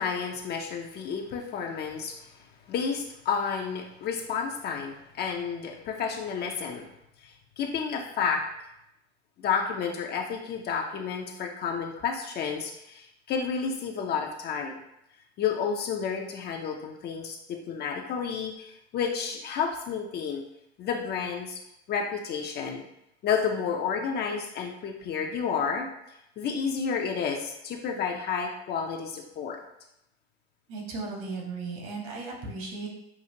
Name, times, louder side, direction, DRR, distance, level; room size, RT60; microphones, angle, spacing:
voice 1, 0.0-2.3 2.7-6.9 7.2-8.4 9.4-14.8 15.4-20.4 20.8-21.6 21.9-22.8 23.2-25.9 26.4-29.6, left 6 dB, 30° left, 1 dB, 0.5 m, -31 dB
voice 2, 30.7-32.9, right 3 dB, 55° right, -1 dB, 1.5 m, -36 dB
5.8 x 2.4 x 2.8 m, 0.82 s
hypercardioid pair, 95°, 34 cm